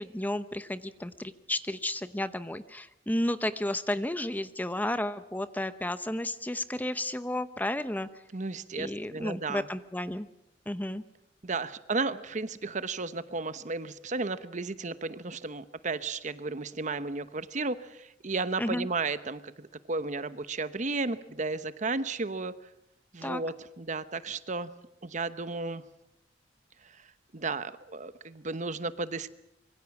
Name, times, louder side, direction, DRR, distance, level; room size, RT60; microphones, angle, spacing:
voice 1, 0.0-8.1 8.8-10.3 10.7-11.0 18.6-18.9 23.2-23.4, left 1 dB, 10° left, 12 dB, 0.8 m, -32 dB
voice 2, 8.3-9.7 11.4-22.5 23.1-24.7 25.0-25.8 27.3-29.3, right 3 dB, 45° right, 13 dB, 1.0 m, -33 dB
25.5 x 22.5 x 7.2 m, 0.85 s
head